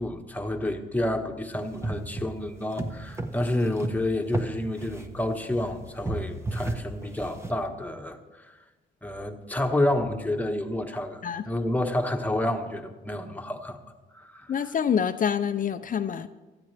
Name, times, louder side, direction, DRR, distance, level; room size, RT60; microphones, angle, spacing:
voice 1, 0.0-8.2 8.4-8.5 9.0-11.2 11.5-13.8 14.1-14.5, left 1 dB, 10° left, 4 dB, 1.4 m, -29 dB
sound 1, 1.5-7.5, right 2 dB, 15° right, 1.2 m, -34 dB
voice 2, 14.5-16.3, left 7 dB, 45° left, 10 dB, 0.6 m, -26 dB
16.5 x 13.0 x 3.4 m, 1.2 s
cardioid pair, 90°, 20 cm